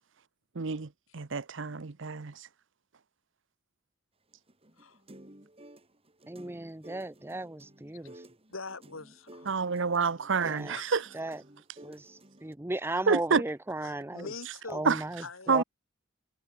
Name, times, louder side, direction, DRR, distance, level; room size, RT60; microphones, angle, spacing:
voice 1, 0.6-2.3 9.5-11.0 13.1-13.4 14.8-15.0 15.5-15.6, right 5 dB, 65° right, 0.8 m, -28 dB
sound 1, 4.3-12.5, right 1 dB, 30° right, 3.9 m, -53 dB
voice 2, 6.3-8.3 10.4-10.8 11.1-11.4 11.8-14.3 14.7-15.6, right 2 dB, 10° right, 0.7 m, -36 dB
voice 3, 8.5-10.1 10.4-10.8 13.8-14.8 15.2-15.6, left 3 dB, 85° left, 2.6 m, -44 dB
head